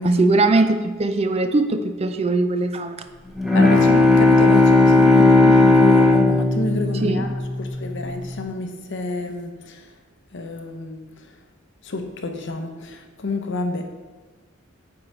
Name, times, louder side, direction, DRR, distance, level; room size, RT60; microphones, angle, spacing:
voice 1, 0.0-3.0 6.9-7.3, right 2 dB, 30° right, 8 dB, 0.4 m, -20 dB
Bowed string instrument, 3.4-7.9, left 3 dB, ahead, 0.8 m, -15 dB
voice 2, 3.5-7.3 7.6-9.8 10.3-11.0 11.8-13.9, left 2 dB, 60° left, 6 dB, 0.8 m, -29 dB
9.0 x 3.9 x 4.3 m, 1.3 s
head